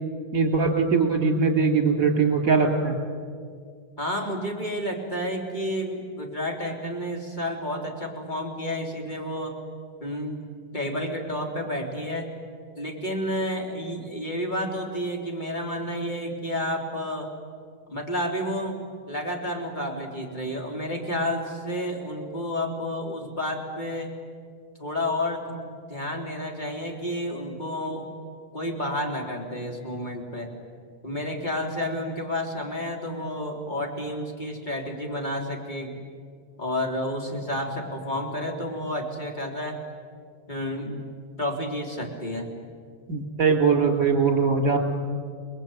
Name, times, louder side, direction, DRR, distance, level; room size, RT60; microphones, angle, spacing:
voice 1, 0.3-3.0 43.1-44.8, right 5 dB, 40° right, 4 dB, 3.7 m, -21 dB
voice 2, 4.0-9.6 10.0-10.4 10.7-12.3 12.8-17.3 17.9-18.8 19.1-24.1 24.8-28.1 28.5-30.5 31.0-36.0 36.6-39.8 40.5-41.0 41.4-42.5, left 1 dB, 20° left, 1 dB, 3.4 m, -30 dB
30.0 x 20.5 x 9.1 m, 2.2 s
omnidirectional pair, 2.4 m